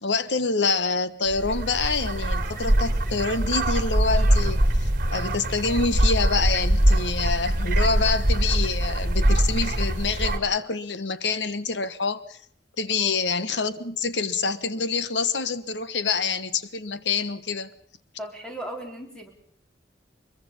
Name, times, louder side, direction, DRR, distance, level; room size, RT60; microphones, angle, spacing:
voice 1, 0.0-12.4 12.8-17.7, left 4 dB, 90° left, 13 dB, 1.3 m, -26 dB
sound 1, 1.3-10.4, right 1 dB, 50° right, 2.2 m, -23 dB
voice 2, 18.2-19.3, right 1 dB, 5° left, 1 dB, 4.1 m, -37 dB
23.5 x 22.5 x 5.5 m, 0.62 s
head